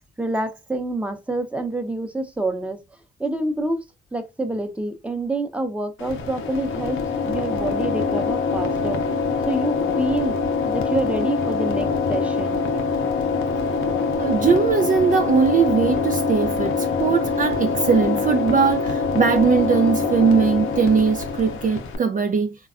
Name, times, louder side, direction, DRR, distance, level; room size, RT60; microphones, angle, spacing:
voice 1, 0.2-2.8 3.2-3.8 4.1-9.1 9.5-10.4 10.6-12.6, right 2 dB, 5° right, 0.7 m, -27 dB
sound 1, 6.0-22.0, left 4 dB, 80° left, 0.6 m, -24 dB
voice 2, 14.2-22.6, right 6 dB, 40° right, 0.4 m, -20 dB
3.3 x 2.2 x 2.4 m
supercardioid pair, 60°, 20 cm